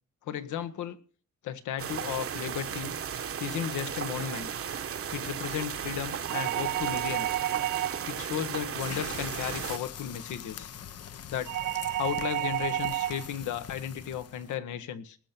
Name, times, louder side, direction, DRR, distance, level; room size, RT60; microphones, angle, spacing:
voice 1, 0.2-1.0 1.4-2.9 3.4-4.5 5.1-7.4 8.1-10.7 11.3-11.5 12.0-15.2, left 9 dB, 80° left, 11 dB, 1.4 m, -34 dB
sound 1, 1.8-9.8, right 8 dB, 50° right, 1.1 m, -35 dB
sound 2, 6.3-8.2 11.5-13.3, right 13 dB, 75° right, 1.1 m, -31 dB
sound 3, 8.8-14.6, left 9 dB, 55° left, 0.9 m, -43 dB
19.5 x 6.8 x 6.0 m, 0.42 s
cardioid pair, 90°, 30 cm